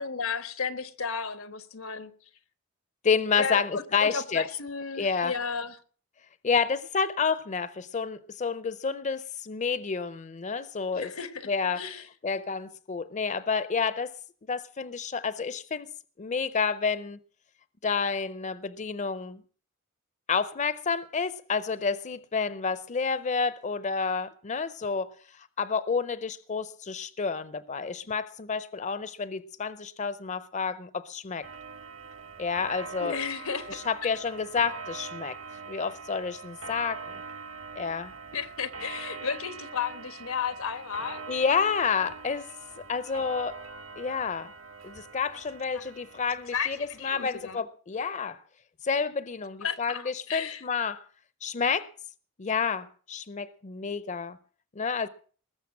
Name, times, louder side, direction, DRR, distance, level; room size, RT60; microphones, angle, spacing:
voice 1, 0.0-2.1 3.4-5.7 10.9-11.5 11.8-12.0 33.0-33.8 38.3-41.2 45.7-45.9 46.5-47.6 49.6-50.6, left 6 dB, 90° left, 1.3 m, -33 dB
voice 2, 3.0-4.5 5.0-5.4 6.4-11.1 11.5-14.1 14.5-15.9 16.2-17.2 17.8-19.4 20.3-25.1 25.6-31.5 32.4-33.2 33.7-35.4 35.7-37.0 37.8-38.1 41.3-42.5 42.8-43.6 44.0-44.5 44.8-48.4 48.8-51.0 51.4-51.9 52.4-54.4 54.8-55.1, left 5 dB, 35° left, 0.6 m, -29 dB
Clock, 31.4-47.5, right 4 dB, 75° right, 1.8 m, -43 dB
20.0 x 6.8 x 7.3 m
head